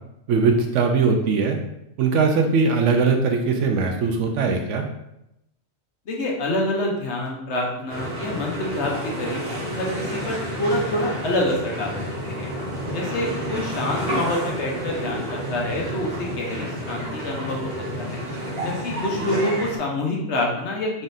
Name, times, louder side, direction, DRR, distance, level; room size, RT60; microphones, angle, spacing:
voice 1, 0.3-1.6 2.0-4.9, right 4 dB, 70° right, 3 dB, 0.9 m, -20 dB
voice 2, 6.1-12.0 12.3-12.5 12.9-18.2 18.6-21.0, left 1 dB, 65° left, -1 dB, 1.0 m, -27 dB
sound 1, 7.9-19.8, equal, 50° right, 1.5 m, -30 dB
4.0 x 3.6 x 2.6 m, 0.84 s
omnidirectional pair, 1.3 m